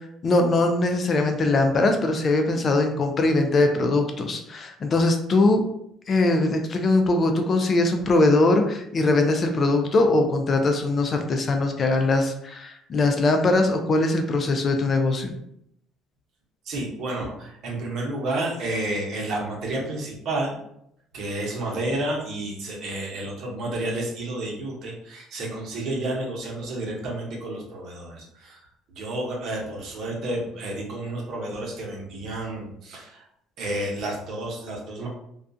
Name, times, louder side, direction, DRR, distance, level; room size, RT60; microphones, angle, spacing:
voice 1, 0.2-5.6 6.1-15.3, left 2 dB, 40° left, 5 dB, 0.4 m, -21 dB
voice 2, 16.6-20.6 21.1-33.2 33.6-35.1, right 1 dB, 65° right, -2 dB, 0.8 m, -31 dB
2.3 x 2.3 x 2.5 m, 0.75 s
supercardioid pair, 75°, 0 cm